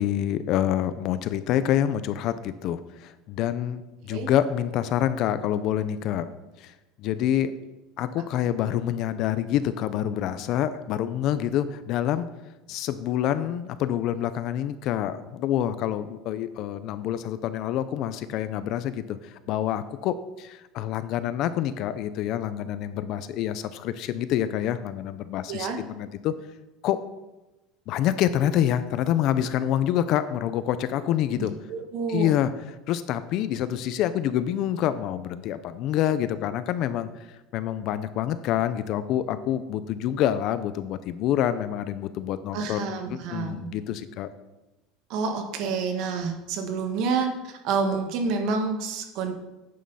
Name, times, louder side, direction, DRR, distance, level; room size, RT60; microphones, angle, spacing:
voice 1, 0.0-6.3 6.6-6.7 7.0-7.5 8.0-12.3 12.7-26.3 26.8-27.0 27.9-31.5 32.1-32.5 32.9-37.1 37.5-44.3, left 11 dB, 40° left, 13 dB, 0.5 m, -27 dB
voice 2, 25.5-25.8 31.4-32.4 42.5-43.7 45.1-49.3, right 4 dB, 50° right, 5 dB, 1.4 m, -28 dB
9.3 x 6.5 x 5.5 m, 1.0 s
cardioid pair, 175°, 0 cm